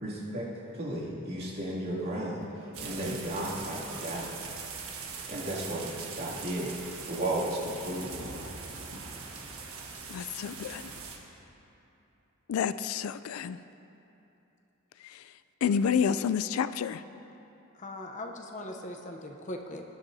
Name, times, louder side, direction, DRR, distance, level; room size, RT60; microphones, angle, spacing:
voice 1, 0.0-4.4 5.3-5.9 6.1-6.7 7.1-8.1, right 1 dB, 50° right, -6 dB, 2.6 m, -34 dB
sound 1, 2.7-11.2, right 5 dB, 90° right, 1.4 m, -41 dB
voice 2, 10.1-10.9 12.5-13.6 15.6-17.0, left 7 dB, 80° left, 14 dB, 0.3 m, -29 dB
voice 3, 17.7-19.8, left 1 dB, 35° left, 3 dB, 0.7 m, -40 dB
19.5 x 10.5 x 2.7 m, 3.0 s
head